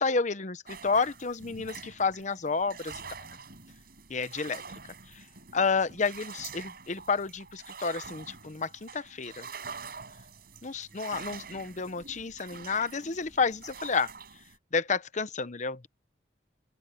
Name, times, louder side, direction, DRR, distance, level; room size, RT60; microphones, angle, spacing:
voice 1, 0.0-3.4 4.1-4.6 5.1-5.2 5.5-9.5 10.6-14.1 14.7-15.9, left 4 dB, 40° left, 0.8 m, -30 dB
sound 1, 0.7-14.6, right 5 dB, 55° right, 7.0 m, -46 dB
open air
head